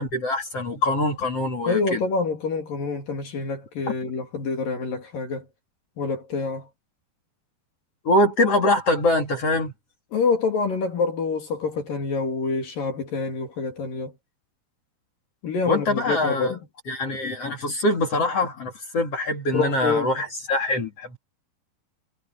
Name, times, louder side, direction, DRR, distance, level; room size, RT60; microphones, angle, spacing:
voice 1, 0.0-2.0 8.0-9.7 15.7-16.5 16.9-21.2, left 1 dB, 40° left, 3.4 m, -23 dB
voice 2, 1.7-5.5 6.0-6.7 10.1-14.1 15.4-16.6 19.5-20.2, left 4 dB, 60° left, 4.3 m, -26 dB
omnidirectional pair, 4.7 m